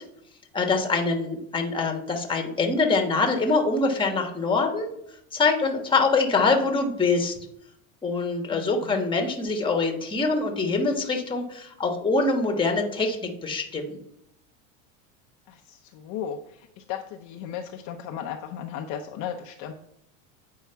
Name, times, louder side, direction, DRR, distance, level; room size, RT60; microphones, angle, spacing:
voice 1, 0.5-4.9 5.3-7.3 8.0-14.0, left 3 dB, 10° left, 3 dB, 1.2 m, -24 dB
voice 2, 8.5-9.0 15.5-19.7, left 8 dB, 45° left, 3 dB, 0.6 m, -36 dB
8.3 x 4.7 x 4.5 m, 0.78 s
supercardioid pair, 130°, 41 cm